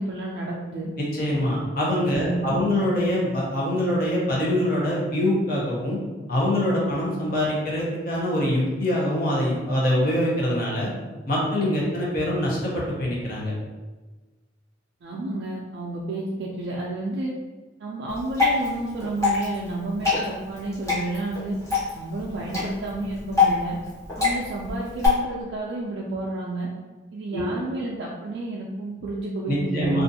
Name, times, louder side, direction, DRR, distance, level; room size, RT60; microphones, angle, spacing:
voice 1, 0.0-0.9 2.1-2.6 15.0-17.3 17.8-21.6 22.0-23.8 24.2-26.7 27.1-30.0, right 2 dB, 65° right, -3 dB, 0.3 m, -31 dB
voice 2, 1.0-6.0 6.3-10.9 11.3-13.5 27.3-27.5 29.5-30.0, left 1 dB, 50° left, -4 dB, 0.7 m, -24 dB
Water / Drip, 18.1-25.1, left 4 dB, 15° left, 1.0 m, -26 dB
2.5 x 2.4 x 2.6 m, 1.2 s
head